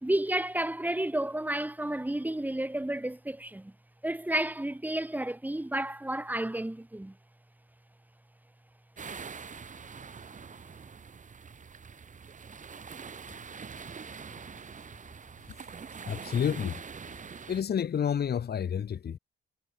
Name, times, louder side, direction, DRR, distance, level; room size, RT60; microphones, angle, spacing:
voice 1, 0.0-3.7 4.0-7.1, right 1 dB, 10° right, 2.7 m, -31 dB
sound 1, 9.0-17.6, right 6 dB, 40° right, 4.1 m, -44 dB
voice 2, 15.4-15.7 16.0-16.8 17.5-19.2, left 8 dB, 55° left, 3.1 m, -30 dB
cardioid pair, 90°, 20 cm